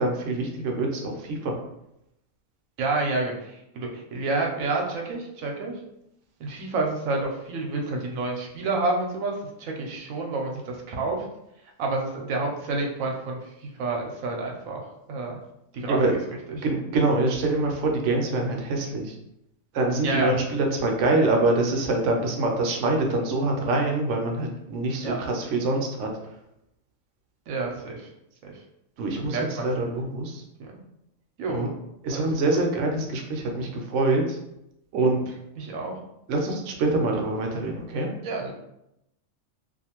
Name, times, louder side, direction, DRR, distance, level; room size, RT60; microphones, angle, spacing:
voice 1, 0.0-1.5 15.9-16.2 16.6-19.1 19.7-26.1 29.0-30.4 31.5-31.7 32.0-34.4 34.9-35.2 36.3-38.1, right 2 dB, 70° right, 1 dB, 0.9 m, -25 dB
voice 2, 2.8-5.7 6.4-9.3 9.6-11.2 11.8-13.4 13.8-15.4 15.7-16.2 16.5-16.6 20.0-20.3 25.0-25.2 27.5-28.1 28.4-28.5 29.2-29.7 30.6-30.7 31.4-31.7 32.1-32.6 35.6-35.9 38.2-38.5, right 3 dB, 90° right, 0 dB, 1.0 m, -29 dB
2.5 x 2.5 x 2.8 m, 0.83 s
omnidirectional pair, 1.4 m